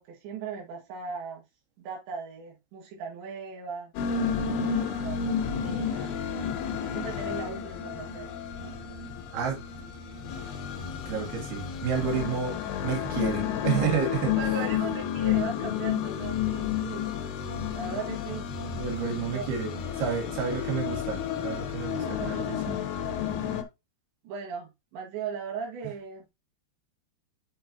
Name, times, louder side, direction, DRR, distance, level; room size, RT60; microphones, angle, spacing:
voice 1, 0.0-1.4 1.8-3.9 4.5-6.1 6.9-8.3 14.4-17.1 17.7-18.5 19.3-19.5 22.0-22.5 24.2-26.3, right 6 dB, 85° right, 4.1 m, -38 dB
sound 1, 4.0-23.6, left 8 dB, 70° left, 3.0 m, -31 dB
voice 2, 11.1-12.6 12.8-14.4 18.7-19.7 20.0-22.7, right 6 dB, 65° right, 4.0 m, -30 dB
7.7 x 5.8 x 2.8 m
omnidirectional pair, 4.9 m